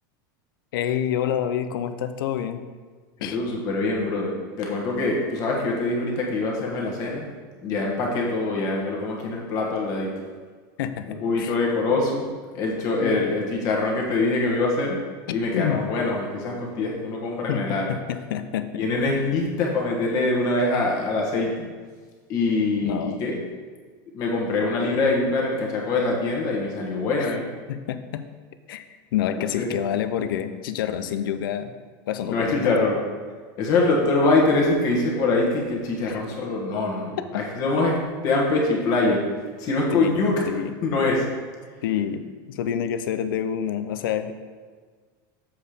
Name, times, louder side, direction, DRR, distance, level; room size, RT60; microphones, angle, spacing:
voice 1, 0.7-2.6 3.2-3.4 10.8-11.6 13.0-13.3 15.3-15.8 17.5-18.8 22.8-23.2 27.2-27.3 27.7-28.2 28.7-28.8 29.1-31.7 32.1-32.8 36.1-36.2 37.2-37.5 39.9-40.2 40.5-40.7 41.8-44.3, left 9 dB, 85° left, 10 dB, 0.6 m, -28 dB
voice 2, 3.2-7.3 7.6-10.1 11.1-12.3 12.5-15.0 15.3-17.9 18.8-21.7 22.3-23.4 24.1-27.4 29.4-29.7 32.2-33.0 33.6-39.2 39.6-40.4 40.8-41.2, left 3 dB, 30° left, -1 dB, 1.4 m, -24 dB
7.5 x 4.5 x 5.0 m, 1.5 s
supercardioid pair, 175°, 11 cm